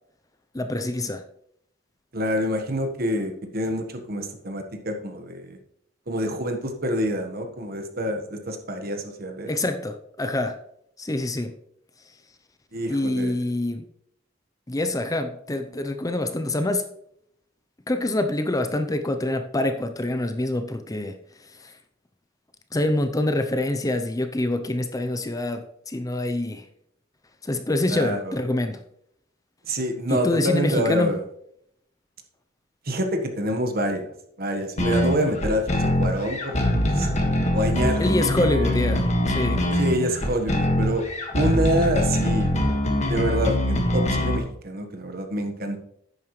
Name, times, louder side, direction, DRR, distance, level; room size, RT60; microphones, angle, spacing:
voice 1, 0.5-1.2 9.5-10.6 11.0-11.5 12.9-13.8 14.7-16.9 17.9-21.2 21.6-21.7 22.7-26.6 27.4-28.8 30.1-31.1 38.0-39.7, left 1 dB, 20° left, 8 dB, 0.6 m, -26 dB
voice 2, 2.1-5.6 6.1-9.5 12.7-13.3 27.9-28.3 29.7-31.2 32.8-34.1 34.4-36.6 36.9-37.1 37.5-38.1 38.6-38.7 39.8-41.1 41.3-42.5 43.1-45.8, equal, 55° right, 5 dB, 1.4 m, -26 dB
sound 1, 34.8-44.4, left 1 dB, 40° left, 1.8 m, -23 dB
11.0 x 9.1 x 3.2 m, 0.72 s
head